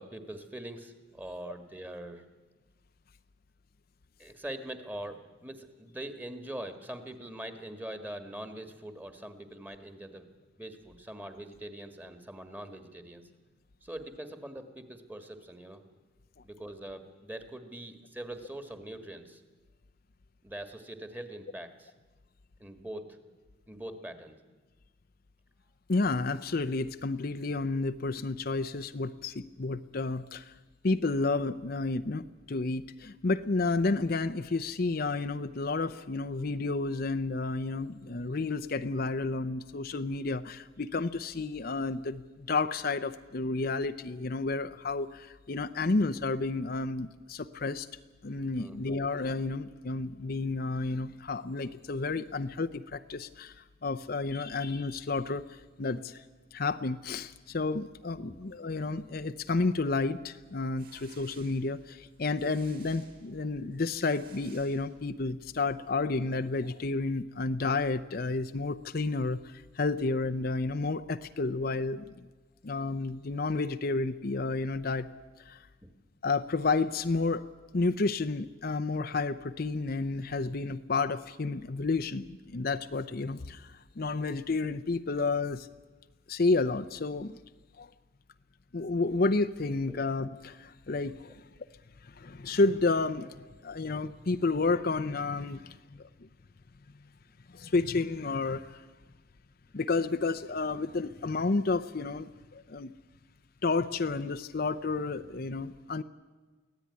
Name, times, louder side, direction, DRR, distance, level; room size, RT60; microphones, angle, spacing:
voice 1, 0.0-2.2 4.2-10.3 10.6-13.3 13.8-15.8 16.4-19.4 20.4-21.9 22.6-23.2 23.7-24.3 48.6-49.0 75.8-75.9 89.9-90.0, right 1 dB, 10° right, 9 dB, 1.6 m, -43 dB
voice 2, 25.9-30.6 30.8-47.9 48.2-56.2 56.5-72.3 72.6-75.1 75.4-75.7 76.2-77.4 77.7-85.7 86.3-87.4 87.8-87.9 88.7-91.4 92.0-96.1 97.5-98.8 99.7-102.9 103.6-106.0, left 3 dB, 50° left, 9 dB, 0.6 m, -31 dB
sound 1, 60.5-65.4, right 6 dB, 50° right, 4.3 m, -58 dB
24.0 x 16.5 x 9.6 m, 1.3 s
head